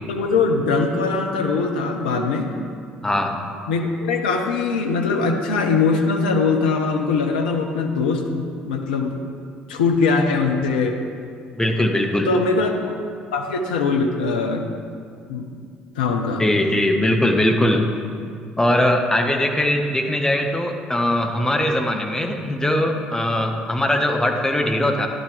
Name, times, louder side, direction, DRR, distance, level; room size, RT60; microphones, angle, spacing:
voice 1, 0.1-2.5 3.7-9.2 9.7-10.9 12.3-13.0 13.3-14.7 15.3-15.5 16.0-16.4, left 4 dB, 80° left, 4 dB, 0.8 m, -21 dB
voice 2, 3.0-3.4 11.5-12.3 16.4-17.8 18.6-25.1, left 1 dB, 10° left, 3 dB, 1.3 m, -20 dB
12.5 x 11.0 x 3.4 m, 2.3 s
figure-of-eight pair, 55°, 5 cm